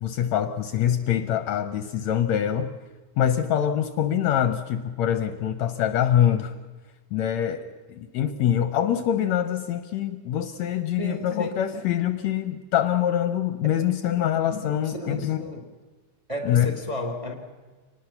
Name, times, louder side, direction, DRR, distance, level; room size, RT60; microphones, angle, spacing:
voice 1, 0.0-2.7 3.2-6.5 7.1-15.5 16.4-16.8, left 10 dB, 70° left, 10 dB, 1.9 m, -24 dB
voice 2, 11.0-11.6 14.6-15.6 16.3-17.3, left 1 dB, 10° right, 5 dB, 1.8 m, -33 dB
24.5 x 19.5 x 7.0 m, 1.3 s
omnidirectional pair, 3.6 m